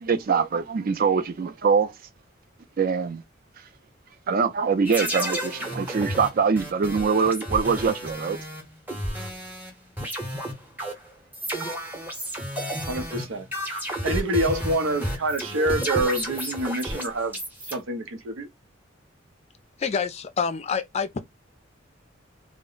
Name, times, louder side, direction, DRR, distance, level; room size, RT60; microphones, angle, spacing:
voice 1, 0.0-1.9 2.8-3.2 4.3-8.4, right 5 dB, 50° right, 0.4 m, -23 dB
sound 1, 4.8-9.7 10.0-17.7, equal, 10° right, 0.7 m, -31 dB
voice 2, 12.9-13.5 14.0-17.4 17.6-18.5, right 1 dB, 90° right, 0.6 m, -26 dB
voice 3, 19.8-21.2, left 6 dB, 35° left, 0.4 m, -27 dB
2.0 x 2.0 x 3.7 m
head